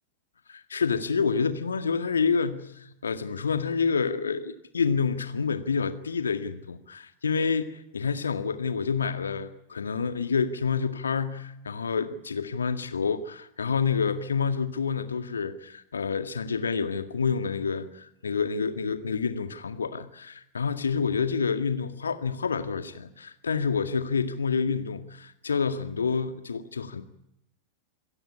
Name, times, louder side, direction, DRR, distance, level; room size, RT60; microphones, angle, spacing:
voice 1, 0.5-27.0, left 5 dB, 70° left, 1.9 m, -28 dB
27.0 x 16.0 x 9.7 m
figure-of-eight pair, 90°, 0 cm